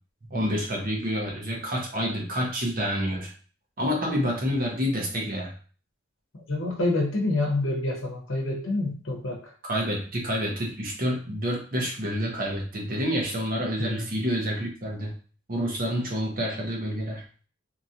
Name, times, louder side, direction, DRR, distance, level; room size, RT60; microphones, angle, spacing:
voice 1, 0.3-3.3 3.8-5.5 9.6-15.1 15.5-17.2, equal, 45° right, -1 dB, 0.9 m, -28 dB
voice 2, 6.5-9.5 13.8-14.0, left 2 dB, 80° left, -1 dB, 0.8 m, -27 dB
2.9 x 2.6 x 2.7 m, 0.39 s
head